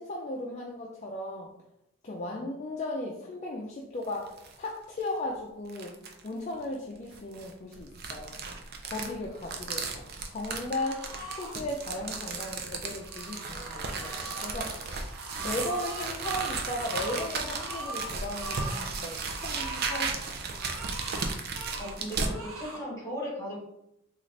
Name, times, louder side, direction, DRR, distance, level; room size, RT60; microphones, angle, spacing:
voice 1, 0.0-1.5 2.0-6.0 6.2-8.4 8.8-11.1 11.4-15.1 15.4-20.4, left 1 dB, 35° left, -1 dB, 0.3 m, -36 dB
sound 1, 4.0-4.6 5.0-5.1 5.7-6.3 7.1-22.3, right 4 dB, 50° right, 0.4 m, -35 dB
sound 2, 10.7-11.5 12.9-14.5 15.0-18.9 19.3-20.1 20.5-21.9 22.2-22.8, right 2 dB, 90° right, 0.8 m, -41 dB
voice 2, 21.8-23.6, equal, 15° left, -5 dB, 1.2 m, -37 dB
3.8 x 2.4 x 3.2 m, 0.83 s
head